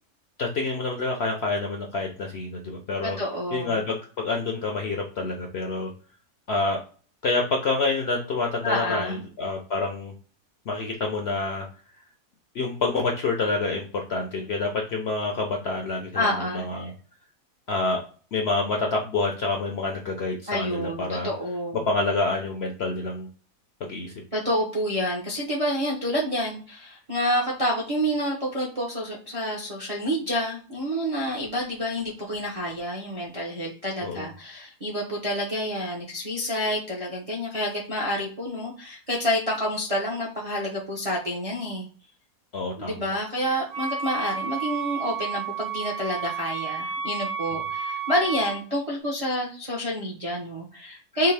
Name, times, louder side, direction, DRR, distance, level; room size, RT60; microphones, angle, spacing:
voice 1, 0.4-3.2 3.5-5.9 6.5-6.8 7.2-10.1 10.7-11.7 12.5-16.9 17.7-18.0 18.3-21.3 21.9-23.3 23.8-24.1 34.0-34.3 42.5-43.0, left 3 dB, 60° left, 1 dB, 0.7 m, -27 dB
voice 2, 3.0-3.9 8.6-9.2 16.1-16.7 20.5-21.8 24.3-41.9 42.8-51.3, equal, 40° right, -3 dB, 0.5 m, -28 dB
Wind instrument woodwind instrument, 43.7-48.6, right 6 dB, 85° right, 1.2 m, -31 dB
3.5 x 2.6 x 3.3 m, 0.40 s
omnidirectional pair, 1.7 m